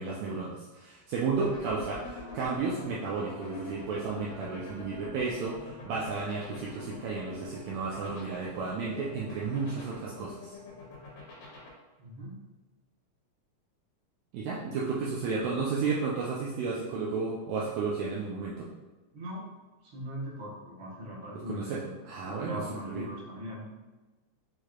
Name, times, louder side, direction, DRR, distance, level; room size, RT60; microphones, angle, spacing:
voice 1, 0.0-10.6 14.3-18.7 21.5-22.6 22.8-23.1, right 4 dB, 80° right, -5 dB, 1.8 m, -33 dB
sound 1, 1.3-11.7, left 4 dB, 90° left, 2.5 m, -45 dB
voice 2, 12.0-12.4 15.3-15.5 19.1-19.5 19.8-21.9 22.2-23.7, equal, 55° right, -6 dB, 1.6 m, -40 dB
6.4 x 3.0 x 2.3 m, 1.2 s
omnidirectional pair, 3.5 m